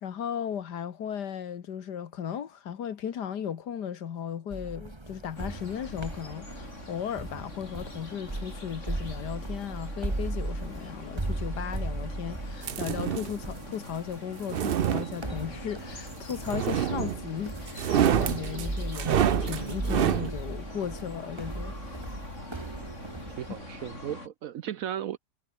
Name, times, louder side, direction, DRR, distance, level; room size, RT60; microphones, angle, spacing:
voice 1, 0.0-22.2, left 8 dB, 70° left, 1.9 m, -36 dB
sound 1, 4.5-24.0, right 2 dB, 15° right, 2.0 m, -37 dB
sound 2, 5.3-24.3, left 2 dB, 40° left, 5.5 m, -45 dB
sound 3, 12.6-13.4 14.3-15.6 16.5-17.3 17.7-20.3, right 9 dB, 90° right, 0.5 m, -27 dB
voice 2, 23.4-25.2, right 10 dB, 65° right, 0.9 m, -35 dB
omnidirectional pair, 1.9 m